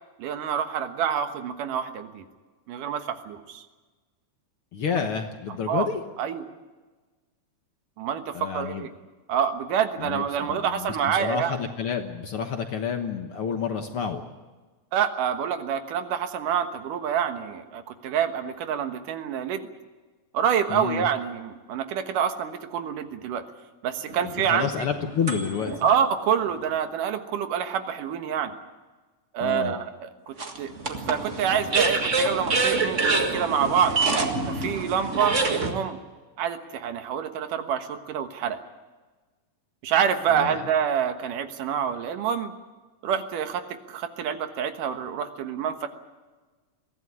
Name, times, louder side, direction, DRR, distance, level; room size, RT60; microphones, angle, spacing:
voice 1, 0.2-2.2 2.7-3.6 5.7-5.9 6.2-6.5 8.0-8.9 9.3-11.6 14.9-19.7 20.3-23.5 23.8-24.7 25.8-28.5 29.3-33.9 34.5-36.0 36.4-38.6 39.8-42.5 43.0-43.6 43.9-45.9, right 8 dB, 80° right, 8 dB, 3.0 m, -27 dB
voice 2, 4.7-6.0 8.3-8.9 10.0-14.2 20.7-21.1 24.2-25.9 29.4-29.7 40.3-40.6, left 6 dB, 55° left, 5 dB, 1.7 m, -29 dB
sound 1, 24.1-25.8 26.5-26.6 30.4-35.7, right 3 dB, 30° right, 1.5 m, -26 dB
22.5 x 16.0 x 9.7 m, 1.3 s
omnidirectional pair, 3.7 m